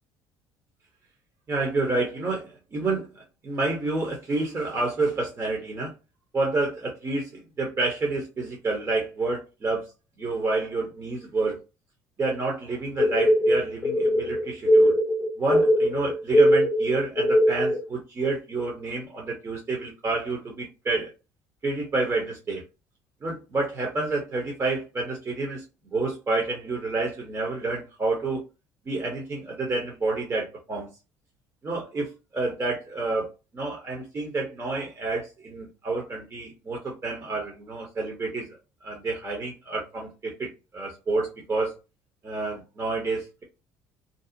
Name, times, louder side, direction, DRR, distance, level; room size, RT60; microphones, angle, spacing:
voice 1, 1.5-5.9 6.3-9.9 10.2-11.6 12.2-15.0 15.4-21.1 21.6-22.6 23.2-25.6 25.9-28.4 28.9-30.9 31.6-41.7 42.2-43.4, right 3 dB, 30° right, 0.9 m, -29 dB
sound 1, 13.0-17.8, equal, 25° left, 0.5 m, -21 dB
2.7 x 2.0 x 2.6 m
supercardioid pair, 75°, 9 cm